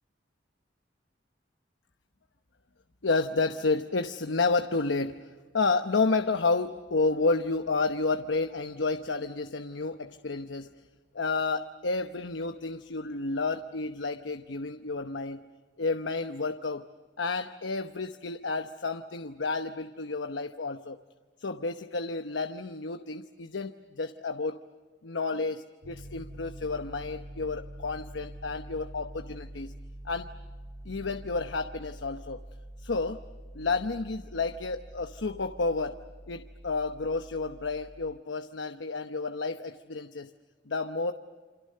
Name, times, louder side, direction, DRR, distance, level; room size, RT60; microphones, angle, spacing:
voice 1, 3.0-5.1 5.5-10.7 11.1-15.4 15.8-16.8 17.2-21.0 21.4-24.6 25.0-29.7 30.0-30.3 30.8-32.4 32.8-33.2 33.5-35.9 36.3-40.3 40.7-41.1, left 3 dB, 80° left, 8 dB, 0.9 m, -30 dB
Piano, 25.8-38.0, right 1 dB, 80° right, 3.5 m, -46 dB
28.5 x 27.0 x 6.7 m, 1.5 s
head